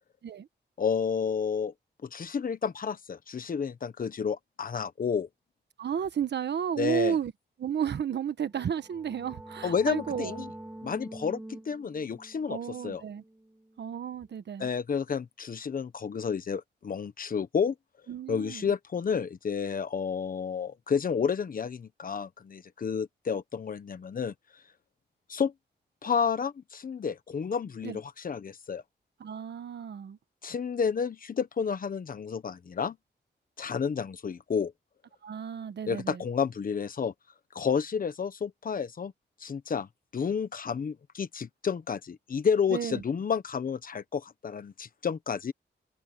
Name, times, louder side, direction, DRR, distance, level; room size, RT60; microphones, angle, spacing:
voice 1, 0.8-1.7 2.0-5.3 6.8-7.2 9.6-10.5 10.8-13.0 14.6-17.7 18.3-24.3 25.3-25.5 26.0-28.8 30.4-33.0 33.6-34.7 35.9-37.1 37.5-39.1 39.4-45.5, left 6 dB, 50° left, 1.2 m, -31 dB
voice 2, 5.8-7.3 7.6-10.4 12.5-13.2 13.8-14.7 18.1-18.7 27.8-28.0 29.2-30.2 35.2-36.2 42.7-43.0, right 8 dB, 70° right, 1.3 m, -32 dB
sound 1, 8.6-14.1, right 1 dB, 10° right, 1.6 m, -46 dB
wide cardioid pair, 140°, 19 cm